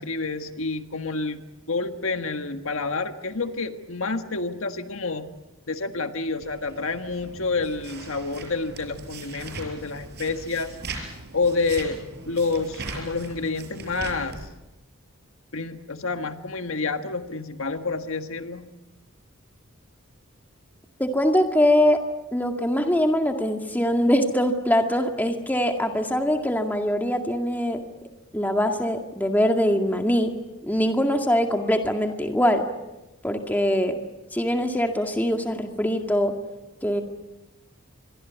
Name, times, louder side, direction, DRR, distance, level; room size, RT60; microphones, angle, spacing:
voice 1, 0.0-1.4 1.7-5.3 5.7-10.8 11.3-12.0 12.3-14.5 15.5-18.7, left 3 dB, 70° left, 7 dB, 1.6 m, -28 dB
sound 1, 6.4-14.5, right 3 dB, 50° right, 5.8 m, -39 dB
voice 2, 21.0-22.0 22.3-27.8 28.3-30.3 30.6-32.6 33.2-34.0 34.3-36.3 36.8-37.0, equal, 10° left, 4 dB, 2.0 m, -22 dB
27.0 x 23.5 x 8.1 m, 1.0 s
head